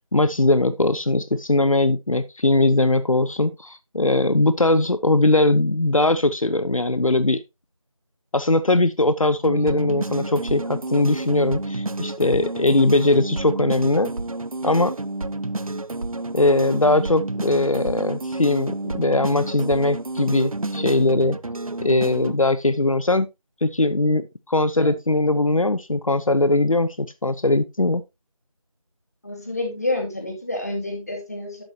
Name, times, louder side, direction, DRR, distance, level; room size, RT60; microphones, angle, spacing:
voice 1, 0.1-7.4 8.3-14.1 14.6-14.9 16.3-21.4 21.8-23.3 23.6-28.0, left 2 dB, 75° left, 0.8 m, -20 dB
sound 1, 9.4-22.4, right 2 dB, 90° right, 0.7 m, -30 dB
voice 2, 29.2-31.6, left 2 dB, 30° left, 2.5 m, -28 dB
11.5 x 8.0 x 2.8 m
figure-of-eight pair, 175°, 18 cm